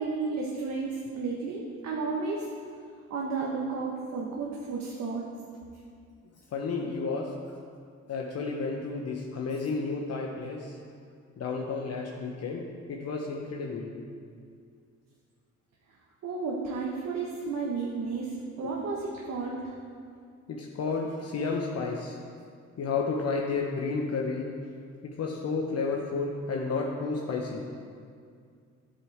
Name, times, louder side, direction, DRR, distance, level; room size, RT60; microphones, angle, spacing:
voice 1, 0.0-2.5 3.1-5.2 16.2-19.6, right 4 dB, 60° right, -2 dB, 1.4 m, -32 dB
voice 2, 6.5-7.3 8.1-10.8 11.4-12.6 12.9-13.9 20.5-22.2 22.8-24.5 25.0-27.7, left 4 dB, 55° left, -1 dB, 1.1 m, -31 dB
11.0 x 8.3 x 3.6 m, 2.2 s
cardioid pair, 90°, 30 cm